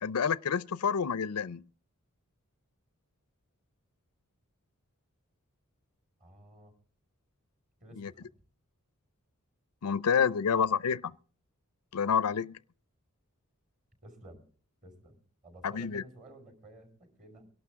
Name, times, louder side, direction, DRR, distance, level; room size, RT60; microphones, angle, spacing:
voice 1, 0.0-1.6 8.0-8.1 9.8-11.2 11.9-12.6 15.6-16.0, left 6 dB, 90° left, 0.6 m, -28 dB
voice 2, 6.2-6.7 7.8-8.4 14.0-14.4 14.8-17.5, right 1 dB, 35° right, 5.6 m, -53 dB
23.5 x 12.0 x 3.6 m
head